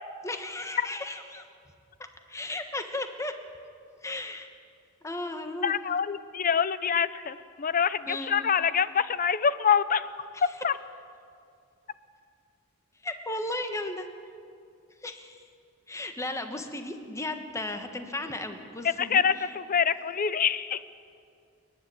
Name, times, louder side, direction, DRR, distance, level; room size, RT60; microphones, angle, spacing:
voice 1, 0.2-1.4 2.3-3.3 4.0-4.5 5.0-5.7 8.1-8.3 10.3-10.6 13.0-14.1 15.0-15.4 15.9-19.5, left 2 dB, 15° left, 7 dB, 1.4 m, -35 dB
voice 2, 5.6-10.1 10.6-10.7 19.0-20.8, left 7 dB, 40° left, 15 dB, 0.7 m, -25 dB
28.0 x 10.5 x 9.5 m, 2.3 s
head